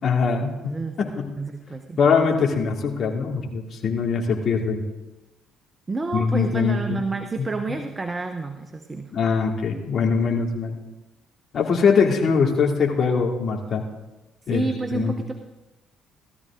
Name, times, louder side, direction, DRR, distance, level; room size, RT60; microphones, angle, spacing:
voice 1, 0.0-0.8 1.2-1.3 2.0-4.8 6.1-7.0 7.4-7.5 9.1-10.8 11.5-13.8 14.5-14.6 14.9-15.1, left 5 dB, 50° left, 0 dB, 2.7 m, -22 dB
voice 2, 0.6-2.0 5.9-9.1 14.4-15.4, right 3 dB, 25° right, 7 dB, 1.1 m, -30 dB
17.0 x 13.5 x 3.8 m, 1.0 s
hypercardioid pair, 50°, 0 cm